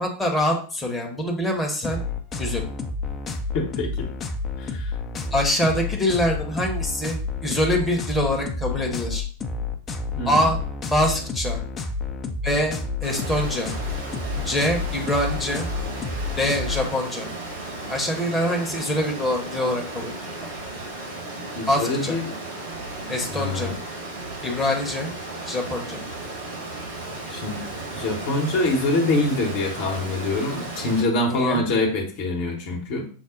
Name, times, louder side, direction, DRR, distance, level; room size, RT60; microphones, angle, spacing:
voice 1, 0.0-2.0 2.4-2.6 5.3-9.3 10.2-10.6 10.9-11.6 12.4-12.7 13.0-13.7 14.4-15.6 16.4-17.3 17.9-20.5 21.7-22.2 23.1-23.7 24.4-25.1 25.5-26.0 31.3-31.6, left 1 dB, 10° left, 1 dB, 0.9 m, -24 dB
sound 1, 1.8-16.8, left 3 dB, 25° left, 0.5 m, -30 dB
voice 2, 3.5-4.1 4.6-4.9 10.2-10.5 21.6-22.4 23.3-23.7 27.3-27.6 27.9-33.1, left 2 dB, 50° left, 1 dB, 0.9 m, -25 dB
Water, 13.0-31.0, right 2 dB, 65° right, 1.5 m, -35 dB
5.9 x 2.0 x 3.8 m, 0.41 s
figure-of-eight pair, 90°, 0 cm